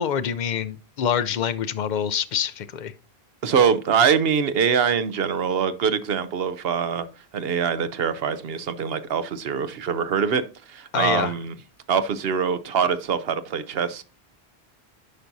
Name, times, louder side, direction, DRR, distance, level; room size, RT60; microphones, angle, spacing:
voice 1, 0.0-2.9 10.9-11.3, left 8 dB, 55° left, 0.6 m, -26 dB
voice 2, 3.4-7.0 7.3-10.4 10.7-11.5 11.9-14.0, right 7 dB, 75° right, 0.9 m, -23 dB
9.9 x 5.9 x 2.6 m
omnidirectional pair, 1.0 m